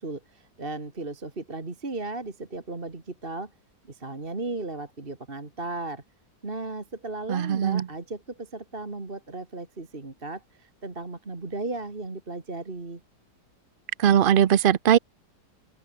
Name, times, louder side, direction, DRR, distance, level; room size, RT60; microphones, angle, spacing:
voice 1, 0.0-3.5 3.9-6.0 6.4-13.0, right 2 dB, 30° right, 2.6 m, -36 dB
voice 2, 7.3-7.9 14.0-15.0, right 9 dB, 55° right, 0.5 m, -20 dB
open air
omnidirectional pair, 1.8 m